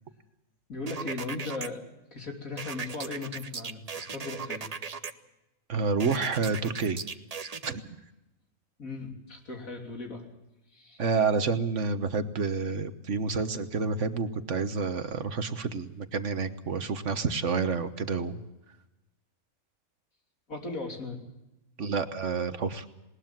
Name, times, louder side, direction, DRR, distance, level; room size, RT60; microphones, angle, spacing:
voice 1, 0.7-1.8 2.1-4.7 8.8-10.3 10.7-11.0 20.5-21.2, left 3 dB, 75° left, 3 dB, 3.7 m, -37 dB
sound 1, 0.9-1.7 2.6-5.1 6.0-7.7, right 5 dB, 35° right, 0.8 m, -37 dB
voice 2, 5.7-7.0 7.6-7.8 11.0-18.4 21.8-22.8, right 4 dB, 60° right, 11 dB, 1.5 m, -29 dB
20.0 x 20.0 x 7.4 m, 0.95 s
omnidirectional pair, 1.5 m